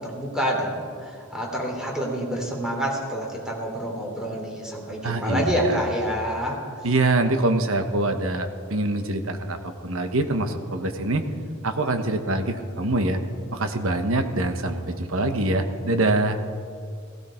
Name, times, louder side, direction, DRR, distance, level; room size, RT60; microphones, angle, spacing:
voice 1, 0.0-6.6, equal, 5° right, -2 dB, 3.1 m, -27 dB
voice 2, 5.0-5.8 6.8-11.3 11.6-13.2 13.5-16.4, right 2 dB, 65° right, 7 dB, 1.2 m, -24 dB
16.5 x 16.0 x 4.5 m, 2.2 s
head